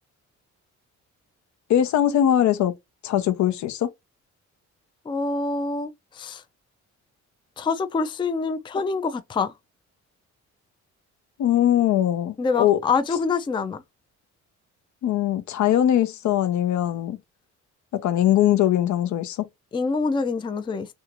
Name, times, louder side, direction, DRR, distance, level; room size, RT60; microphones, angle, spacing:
voice 1, 1.7-2.7 3.0-3.9 11.4-12.8 15.0-17.2 18.0-19.5, left 11 dB, 70° left, 0.7 m, -21 dB
voice 2, 5.1-6.4 7.6-9.5 12.4-13.8 19.7-20.9, left 4 dB, 15° left, 0.4 m, -26 dB
2.7 x 2.4 x 2.9 m
cardioid pair, 90°, 30 cm